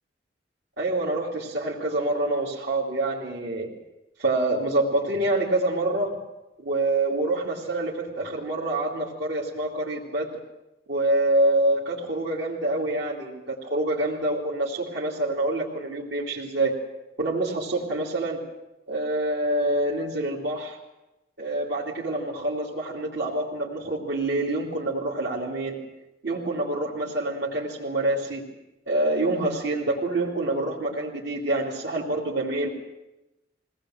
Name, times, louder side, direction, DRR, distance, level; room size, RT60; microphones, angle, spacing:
voice 1, 0.8-3.7 4.2-6.2 6.6-10.3 10.9-16.7 17.2-18.4 18.9-20.8 21.4-25.8 26.2-28.5 28.9-32.7, right 2 dB, 80° right, -5 dB, 2.8 m, -26 dB
22.0 x 18.0 x 7.9 m, 0.98 s
head